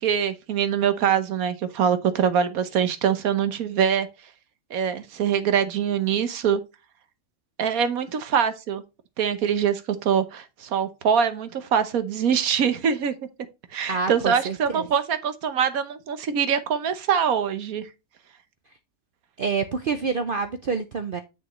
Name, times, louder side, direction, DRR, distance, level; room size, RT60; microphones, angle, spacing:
voice 1, 0.0-4.1 4.7-6.6 7.6-8.8 9.2-13.1 13.7-17.9, right 7 dB, 85° right, 1.4 m, -24 dB
voice 2, 13.9-14.9 19.4-21.2, right 5 dB, 50° right, 0.7 m, -27 dB
8.3 x 6.2 x 3.1 m
omnidirectional pair, 1.5 m